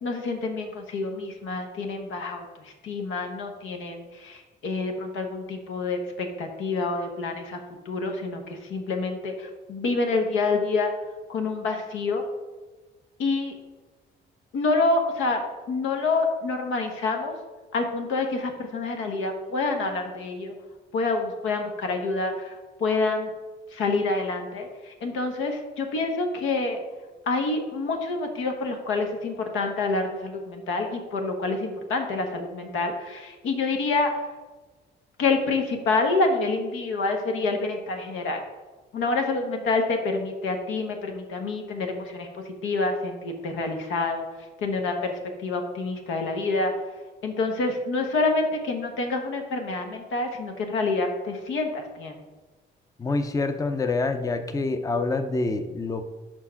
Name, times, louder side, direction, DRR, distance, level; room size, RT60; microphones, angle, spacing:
voice 1, 0.0-7.6 7.8-10.9 11.3-12.2 13.2-13.5 14.5-15.4 15.7-17.4 17.7-20.5 20.9-23.3 23.7-26.8 27.3-34.3 35.2-38.4 38.9-44.3 44.6-46.7 47.2-52.2, left 3 dB, 85° left, 3 dB, 1.0 m, -27 dB
voice 2, 53.0-56.0, left 3 dB, 15° left, 8 dB, 0.5 m, -26 dB
5.0 x 4.4 x 5.7 m, 1.3 s
cardioid pair, 90°, 20 cm